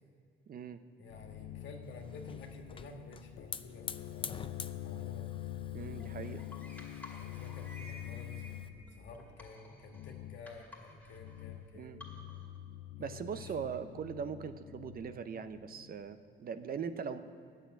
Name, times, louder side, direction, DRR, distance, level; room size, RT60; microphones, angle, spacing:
voice 1, 0.5-0.8 5.7-6.4 11.7-12.0 13.0-17.2, right 6 dB, 50° right, 11 dB, 0.6 m, -40 dB
voice 2, 1.0-5.3 7.2-12.0 13.0-13.5, left 3 dB, 65° left, 2 dB, 1.7 m, -52 dB
sound 1, 1.1-8.8 9.9-10.5 11.1-11.7 11.9-16.0, left 13 dB, 90° left, 0.5 m, -45 dB
Hiss / Fire, 1.8-8.7, left 6 dB, 25° left, 0.4 m, -48 dB
sound 2, 5.3-12.6, left 2 dB, 10° left, 2.4 m, -54 dB
8.9 x 7.3 x 8.9 m, 2.4 s
cardioid pair, 90°, 20 cm